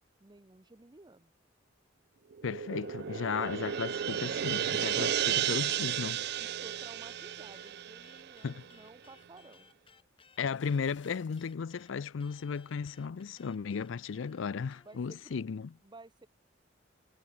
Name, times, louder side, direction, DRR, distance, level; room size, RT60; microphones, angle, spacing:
voice 1, 0.2-1.3 4.9-5.1 6.4-9.7 14.8-15.4 15.8-16.3, right 2 dB, 25° right, 0.7 m, -54 dB
sound 1, 2.3-8.9, right 10 dB, 55° right, 0.4 m, -33 dB
voice 2, 2.4-6.2 8.4-8.6 10.4-15.7, left 6 dB, 85° left, 0.5 m, -35 dB
sound 2, 4.9-7.7 8.0-15.4, left 5 dB, 30° left, 2.1 m, -62 dB
sound 3, 10.3-11.6, left 8 dB, 70° left, 2.9 m, -62 dB
head